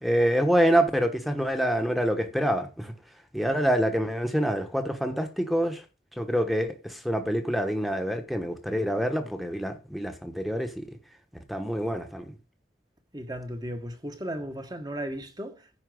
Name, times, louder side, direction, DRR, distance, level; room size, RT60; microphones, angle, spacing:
voice 1, 0.0-2.9 3.3-5.8 6.2-10.8 11.5-12.3, equal, ahead, 1.2 m, -26 dB
voice 2, 13.1-15.8, equal, 20° right, 1.4 m, -36 dB
10.0 x 4.6 x 7.8 m
head